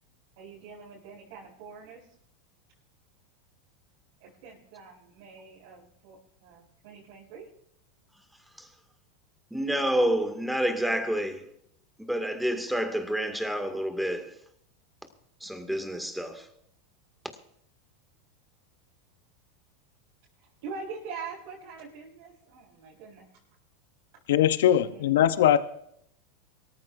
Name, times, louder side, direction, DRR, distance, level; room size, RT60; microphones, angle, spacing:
voice 1, 0.4-2.1 4.2-7.5 20.4-23.3 24.8-25.3, right 5 dB, 65° right, 4.4 m, -44 dB
voice 2, 9.5-11.5 12.0-14.3 15.4-16.5, right 1 dB, 5° right, 2.2 m, -28 dB
voice 3, 24.3-25.6, left 11 dB, 75° left, 0.8 m, -21 dB
23.5 x 14.0 x 2.6 m
hypercardioid pair, 100°, 0 cm